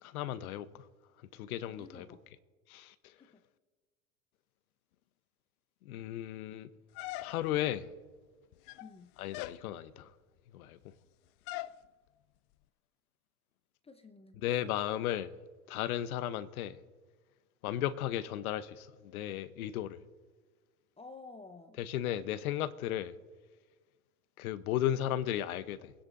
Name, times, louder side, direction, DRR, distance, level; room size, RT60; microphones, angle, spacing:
voice 1, 0.0-0.8 1.3-2.1 2.7-2.9 5.8-6.7 7.2-7.9 9.2-10.1 10.5-10.9 14.4-15.3 15.7-16.8 17.6-20.0 21.8-23.1 24.4-25.9, left 12 dB, 70° left, 0.9 m, -35 dB
voice 2, 1.6-2.2 3.2-3.4 8.8-9.1 13.8-14.4 21.0-21.8, left 3 dB, 15° left, 0.7 m, -51 dB
sound 1, 7.0-7.7 8.5-9.0 9.3-9.6 11.5-11.8, left 16 dB, 45° left, 0.4 m, -41 dB
23.0 x 9.9 x 2.6 m
hypercardioid pair, 95°, 45 cm